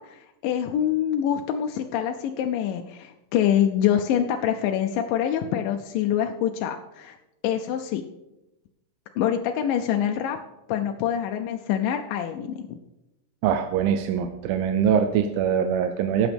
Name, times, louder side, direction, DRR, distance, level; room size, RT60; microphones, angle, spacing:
voice 1, 0.0-7.2 7.4-8.0 9.2-10.4 10.7-12.8, left 10 dB, 80° left, 4 dB, 2.2 m, -25 dB
voice 2, 13.4-16.3, right 8 dB, 85° right, 7 dB, 2.5 m, -23 dB
18.5 x 8.1 x 3.4 m, 0.96 s
omnidirectional pair, 4.1 m